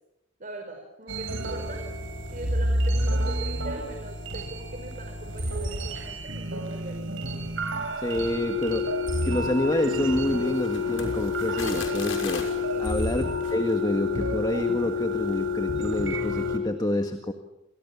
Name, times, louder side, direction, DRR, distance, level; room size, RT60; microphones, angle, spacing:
voice 1, 0.4-1.8 2.3-7.1 12.7-13.0, right 2 dB, 45° right, 4 dB, 5.0 m, -41 dB
sound 1, 1.1-16.6, left 2 dB, 85° right, 4.3 m, -29 dB
voice 2, 8.0-8.9 9.2-12.5 12.8-17.3, left 1 dB, 20° left, 6 dB, 1.8 m, -28 dB
sound 2, 10.3-12.6 13.3-13.6, left 4 dB, 90° left, 5.9 m, -37 dB
29.5 x 27.0 x 7.2 m, 0.92 s
head